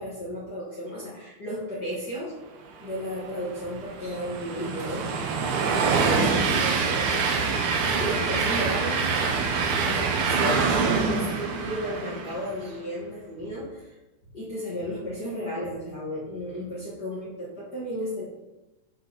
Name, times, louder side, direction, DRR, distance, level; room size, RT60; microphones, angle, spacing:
voice 1, 0.0-2.3 2.8-5.2 5.7-7.1 7.8-9.0 9.6-13.9 14.3-18.2, equal, 40° left, -7 dB, 2.0 m, -34 dB
Train, 3.2-12.6, right 5 dB, 80° right, 2.4 m, -25 dB
8.0 x 4.6 x 5.6 m, 1.0 s
omnidirectional pair, 3.5 m